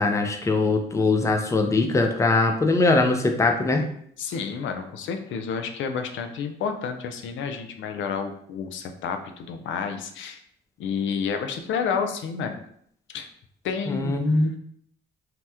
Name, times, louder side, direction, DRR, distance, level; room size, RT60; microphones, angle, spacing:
voice 1, 0.0-3.8 13.9-14.5, left 3 dB, 15° left, 4 dB, 0.4 m, -21 dB
voice 2, 4.2-10.4 10.8-12.6 13.1-13.3 13.6-14.2, left 6 dB, 75° left, 7 dB, 0.4 m, -30 dB
2.8 x 2.1 x 3.4 m, 0.65 s
cardioid pair, 90°, 20 cm